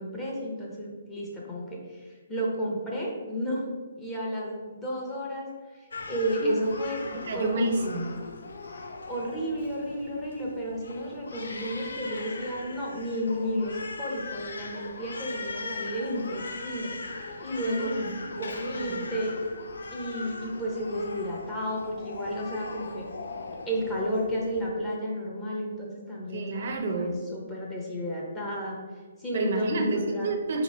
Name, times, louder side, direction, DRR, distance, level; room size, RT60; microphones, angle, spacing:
voice 1, 0.0-3.6 4.0-7.0 7.3-8.0 9.1-17.9 18.6-19.4 19.9-23.1 23.6-28.8 29.2-30.3, equal, 10° left, -4 dB, 0.7 m, -32 dB
Crying sobbing, 5.9-24.7, left 3 dB, 75° left, 0.5 m, -40 dB
voice 2, 7.1-8.1 17.6-19.0 26.3-27.1 29.3-30.6, right 2 dB, 45° right, 4 dB, 0.6 m, -30 dB
4.3 x 3.0 x 4.2 m, 1.5 s
hypercardioid pair, 170°, 0 cm